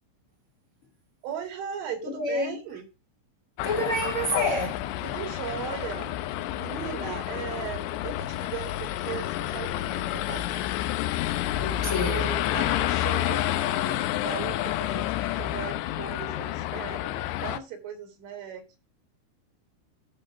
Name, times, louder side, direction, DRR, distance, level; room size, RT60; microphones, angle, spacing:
voice 1, 1.2-2.8 5.0-6.2 6.6-10.8 11.9-18.8, right 8 dB, 80° right, 4.7 m, -38 dB
voice 2, 2.0-2.6 3.6-4.8 11.6-12.3, equal, 55° left, 1.5 m, -28 dB
sound 1, 3.6-17.6, left 14 dB, 80° left, 2.7 m, -29 dB
11.5 x 4.2 x 6.1 m
omnidirectional pair, 5.4 m